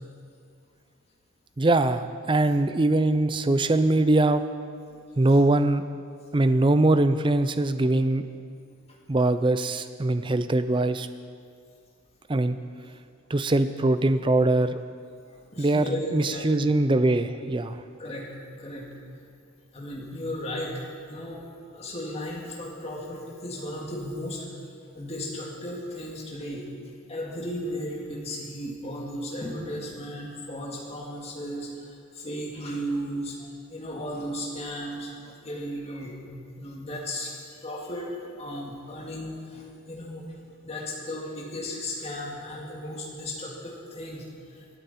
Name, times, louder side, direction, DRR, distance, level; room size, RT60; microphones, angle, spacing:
voice 1, 1.6-4.4 5.2-5.8 6.3-8.2 9.1-11.1 12.3-12.6 13.3-14.8 15.6-17.8, right 2 dB, 20° right, 11 dB, 0.4 m, -22 dB
voice 2, 15.3-16.7 18.0-18.3 18.6-18.9 19.7-20.8 21.1-21.4 21.7-24.6 24.9-26.7 27.1-44.6, equal, 30° left, -3 dB, 2.1 m, -35 dB
24.5 x 9.1 x 4.3 m, 2.3 s
head